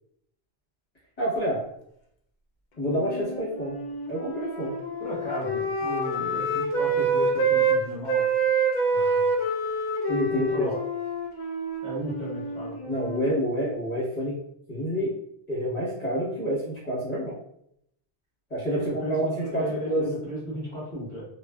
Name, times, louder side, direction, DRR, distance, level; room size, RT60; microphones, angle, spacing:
voice 1, 1.2-1.6 2.8-3.7 4.1-4.7 10.1-10.7 12.8-14.4 14.7-15.1 15.5-17.3 18.5-20.1, equal, 40° left, -8 dB, 1.1 m, -28 dB
Wind instrument woodwind instrument, 2.9-7.8 8.1-13.4, right 3 dB, 60° left, 0.5 m, -27 dB
voice 2, 5.0-8.2 8.9-9.2 10.3-10.8 11.8-12.8 18.7-21.3, equal, 30° right, -8 dB, 1.1 m, -34 dB
2.4 x 2.3 x 2.2 m, 0.73 s
omnidirectional pair, 1.1 m